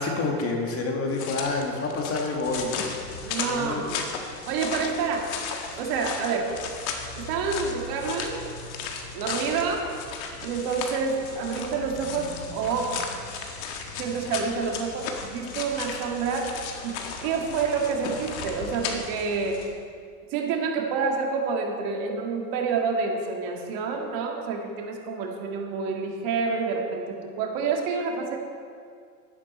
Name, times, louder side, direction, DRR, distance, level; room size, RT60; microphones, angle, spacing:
voice 1, 0.0-2.9 3.2-3.8 5.7-5.8, left 3 dB, 30° left, 1 dB, 1.9 m, -28 dB
sound 1, 1.1-19.0, left 6 dB, 55° left, 1.6 m, -36 dB
sound 2, 2.4-19.7, left 2 dB, 85° left, 2.8 m, -43 dB
voice 2, 3.2-4.1 4.5-5.3 5.8-6.5 7.2-8.4 9.1-9.9 10.4-13.0 14.0-16.6 16.8-19.6 20.3-28.4, right 5 dB, 45° right, 1 dB, 2.0 m, -28 dB
12.0 x 10.5 x 4.3 m, 2.2 s
hypercardioid pair, 115°, 49 cm